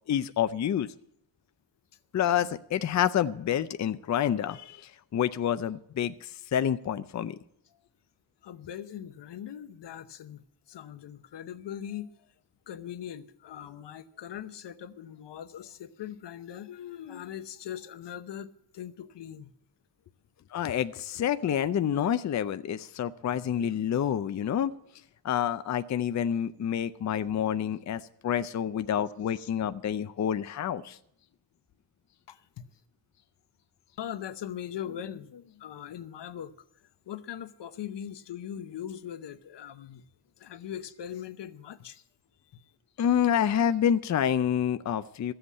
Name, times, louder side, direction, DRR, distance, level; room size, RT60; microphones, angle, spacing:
voice 1, 0.1-0.9 2.1-7.4 20.5-24.7 25.2-31.0 43.0-45.3, left 9 dB, 45° left, 0.5 m, -28 dB
voice 2, 8.4-12.1 12.7-19.5 29.4-29.5 32.3-32.4 34.0-36.5 37.1-40.0 40.4-42.0, left 10 dB, 85° left, 0.9 m, -40 dB
14.0 x 7.9 x 8.2 m
wide cardioid pair, 175°, 41 cm